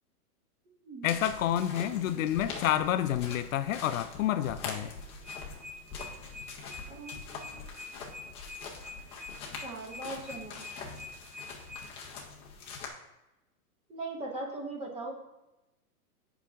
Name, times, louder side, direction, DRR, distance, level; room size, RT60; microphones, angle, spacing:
voice 1, 1.0-4.9, left 11 dB, 60° left, 11 dB, 0.5 m, -29 dB
sound 1, 1.0-12.9, left 5 dB, 15° left, 0.5 m, -44 dB
sound 2, 5.2-11.8, left 3 dB, 45° right, 1.1 m, -44 dB
voice 2, 6.9-7.5 9.6-10.6 13.9-15.1, right 2 dB, 15° right, 1 dB, 0.8 m, -40 dB
5.8 x 4.8 x 5.8 m, 0.96 s
hypercardioid pair, 150°, 46 cm